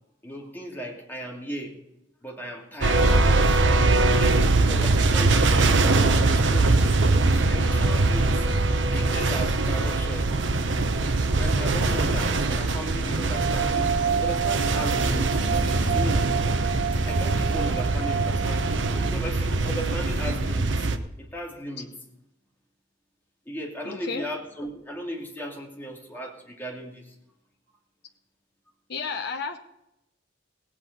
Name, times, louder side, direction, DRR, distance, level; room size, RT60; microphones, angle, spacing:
voice 1, 0.2-1.8 2.2-3.2 4.1-6.8 7.2-8.3 8.9-10.3 11.4-13.9 14.2-16.3 17.0-18.7 19.0-20.8 21.2-21.9 23.5-27.1, equal, 10° left, -1 dB, 2.5 m, -36 dB
sound 1, 2.8-21.0, right 2 dB, 75° right, 0.9 m, -22 dB
sound 2, 13.3-19.1, right 7 dB, 55° right, 1.8 m, -29 dB
voice 2, 23.8-24.2 28.9-29.6, left 4 dB, 60° left, 4 dB, 0.9 m, -32 dB
17.5 x 8.7 x 5.3 m, 0.86 s
head